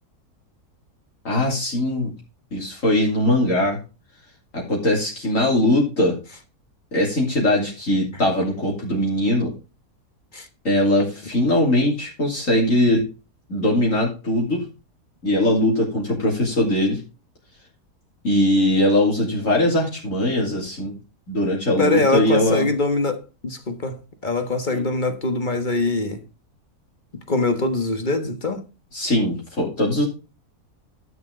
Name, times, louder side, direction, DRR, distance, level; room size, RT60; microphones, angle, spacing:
voice 1, 1.2-2.1 2.5-3.8 4.5-6.2 6.9-9.5 10.6-13.0 13.5-14.6 15.2-17.0 18.2-20.9 21.3-22.7 24.7-24.8 28.9-30.1, left 1 dB, 55° left, 3.3 m, -21 dB
voice 2, 21.8-26.2 27.1-28.7, left 2 dB, 30° left, 1.4 m, -23 dB
12.0 x 6.8 x 3.8 m
omnidirectional pair, 1.7 m